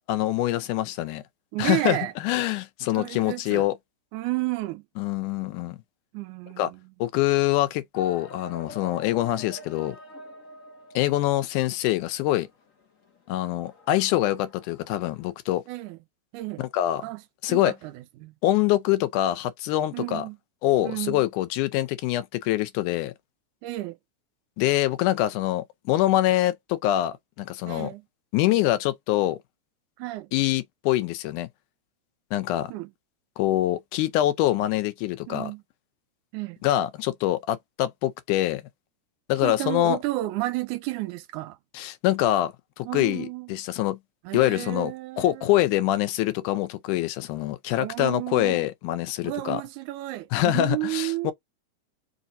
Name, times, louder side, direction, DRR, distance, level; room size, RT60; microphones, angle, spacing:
voice 1, 0.1-1.2 1.6-2.0 2.2-3.7 5.0-5.8 6.6-6.7 7.0-10.0 11.0-12.5 13.3-15.6 16.6-17.0 17.4-17.7 18.4-20.3 20.6-23.1 24.6-27.9 28.3-29.4 30.3-31.5 32.3-32.7 33.4-35.5 36.6-38.6 39.3-40.0 41.7-42.5 42.8-44.0 44.3-49.6 50.3-51.3, left 14 dB, 85° left, 2.1 m, -25 dB
voice 2, 1.5-2.1 2.9-3.7 4.1-4.8 6.1-6.9 15.7-16.0 16.3-16.7 17.0-17.2 17.5-18.3 19.9-20.4 20.8-21.3 23.6-24.0 27.7-28.0 30.0-30.3 32.7-32.9 35.3-35.6 36.3-36.6 39.4-41.6 42.8-43.6 44.2-45.6 47.8-48.7 49.2-51.3, right 18 dB, 85° right, 2.1 m, -32 dB
sound 1, 7.9-15.3, left 2 dB, 60° left, 0.8 m, -46 dB
4.9 x 2.6 x 4.1 m
omnidirectional pair, 3.6 m